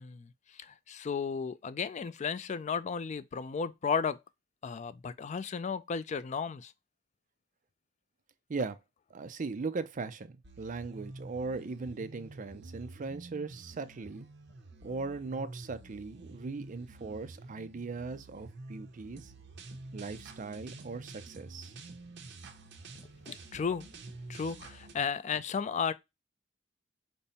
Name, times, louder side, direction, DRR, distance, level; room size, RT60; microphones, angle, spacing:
voice 1, 0.0-4.2 4.6-6.7 23.3-23.9 24.3-25.9, left 6 dB, 40° left, 0.3 m, -34 dB
voice 2, 9.1-14.3 14.8-19.3 19.9-21.7, right 4 dB, 45° right, 0.5 m, -39 dB
sound 1, 10.4-24.9, right 2 dB, 65° right, 0.9 m, -48 dB
5.3 x 2.1 x 4.1 m
head